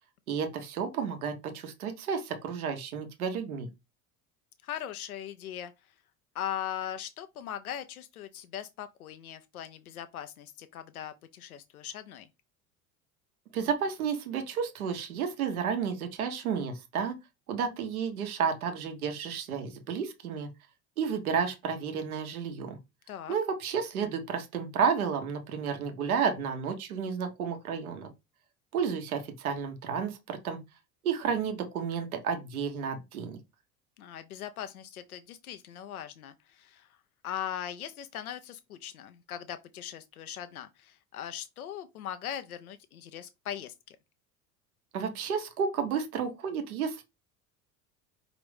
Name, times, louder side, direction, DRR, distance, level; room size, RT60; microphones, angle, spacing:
voice 1, 0.3-3.7 13.5-17.1 17.5-20.5 21.0-22.8 23.3-28.1 28.7-30.6 31.0-33.4 44.9-47.0, right 6 dB, 85° right, 1.0 m, -31 dB
voice 2, 4.6-5.7 6.3-12.3 23.1-23.4 34.0-36.9 37.2-44.0, left 10 dB, 90° left, 0.5 m, -40 dB
5.0 x 3.0 x 3.2 m
hypercardioid pair, 70°, 42 cm